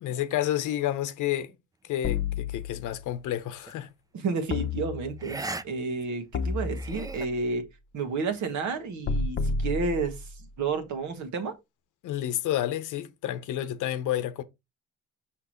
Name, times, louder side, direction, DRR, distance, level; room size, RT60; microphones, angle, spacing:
voice 1, 0.0-1.5 1.9-3.9 12.0-14.4, left 12 dB, 85° left, 1.0 m, -30 dB
sound 1, 2.0-3.1 4.5-5.5 6.3-7.4 9.1-10.5, left 4 dB, 40° left, 0.8 m, -31 dB
sound 2, 3.6-3.9 5.2-5.6 6.0-6.1 6.6-7.3, right 2 dB, 10° right, 0.4 m, -37 dB
voice 2, 4.1-7.7 7.9-10.2 10.6-11.6, right 4 dB, 75° right, 1.6 m, -31 dB
5.9 x 5.8 x 3.1 m
cardioid pair, 90°, 30 cm